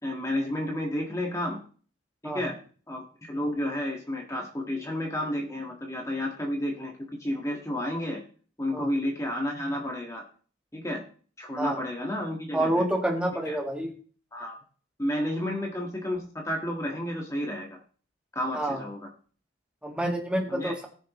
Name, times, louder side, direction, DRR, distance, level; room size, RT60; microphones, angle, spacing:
voice 1, 0.0-1.6 2.2-2.6 2.9-8.2 8.6-10.2 10.7-11.0 11.4-12.8 13.4-13.6 14.3-14.6 15.0-17.8 18.3-19.1 20.5-20.7, left 1 dB, 15° left, 1 dB, 1.6 m, -31 dB
voice 2, 12.5-13.9 18.5-18.8 19.8-20.9, right 1 dB, 5° right, 1 dB, 1.8 m, -28 dB
19.5 x 6.8 x 3.1 m, 0.42 s
head